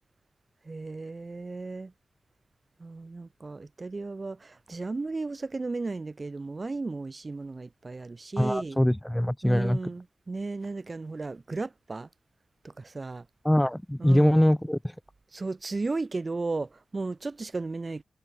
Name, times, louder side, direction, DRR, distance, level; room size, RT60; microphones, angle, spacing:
voice 1, 0.7-1.9 2.8-8.8 9.4-12.1 12.6-13.2 14.0-14.4 15.3-18.0, right 3 dB, 40° right, 2.3 m, -34 dB
voice 2, 8.4-9.8 13.4-14.8, left 1 dB, 5° left, 1.1 m, -23 dB
cardioid pair, 55°, 0 cm